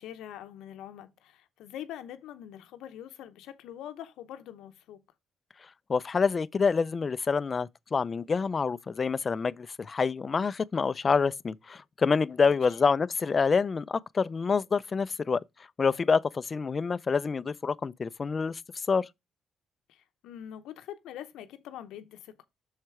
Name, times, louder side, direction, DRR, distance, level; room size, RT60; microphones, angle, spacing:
voice 1, 0.0-5.0 12.4-12.8 19.9-22.5, left 11 dB, 90° left, 0.8 m, -44 dB
voice 2, 5.9-15.4 15.8-18.6 18.9-19.1, left 5 dB, 35° left, 0.4 m, -27 dB
6.5 x 4.5 x 4.8 m
cardioid pair, 90°, 0 cm